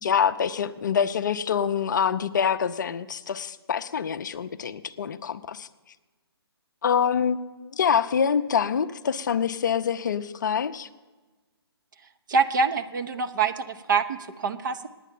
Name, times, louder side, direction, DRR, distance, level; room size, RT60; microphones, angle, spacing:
voice 1, 0.0-5.7 6.8-10.9, left 7 dB, 45° left, 12 dB, 0.5 m, -25 dB
voice 2, 12.3-14.9, right 5 dB, 50° right, 9 dB, 0.8 m, -25 dB
9.8 x 9.2 x 7.5 m, 1.2 s
figure-of-eight pair, 140°, 14 cm